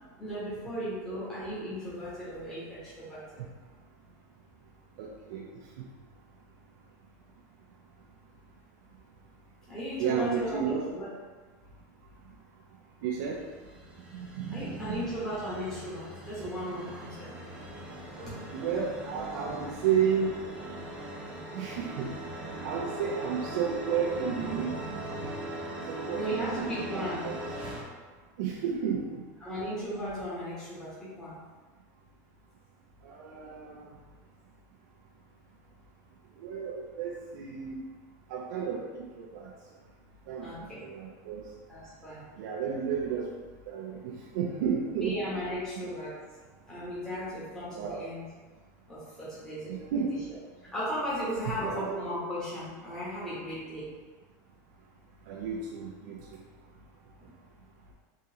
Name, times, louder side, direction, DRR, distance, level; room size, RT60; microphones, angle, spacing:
voice 1, 0.2-3.4 9.7-11.1 14.5-17.4 18.2-18.3 26.1-27.3 29.4-31.4 40.4-40.8 41.7-42.3 45.0-46.1 46.7-48.2 48.9-49.8 50.7-53.9, equal, 5° left, -11 dB, 1.0 m, -36 dB
voice 2, 5.0-5.4 10.0-10.8 13.0-13.4 14.1-15.0 18.5-20.3 21.5-22.1 22.6-24.9 25.9-26.9 27.2-27.4 28.4-29.2 33.0-33.9 36.4-37.8 38.3-39.5 40.3-40.5 40.8-41.4 42.4-43.3 43.7-45.4 47.8-48.0 49.7-50.1 51.5-51.9 55.3-56.2, right 7 dB, 70° right, -3 dB, 0.5 m, -32 dB
sound 1, 13.2-27.8, right 1 dB, 10° right, 0.6 m, -40 dB
3.6 x 3.0 x 2.8 m, 1.4 s
supercardioid pair, 160°, 10 cm